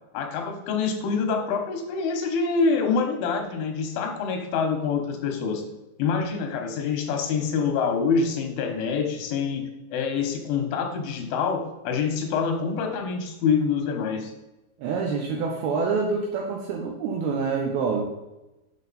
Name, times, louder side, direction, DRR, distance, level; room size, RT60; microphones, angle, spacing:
voice 1, 0.1-5.6 6.0-14.3, left 5 dB, 85° left, 4 dB, 3.7 m, -26 dB
voice 2, 14.8-18.1, right 5 dB, 75° right, 0 dB, 2.3 m, -26 dB
8.2 x 6.4 x 4.1 m, 1.0 s
omnidirectional pair, 5.3 m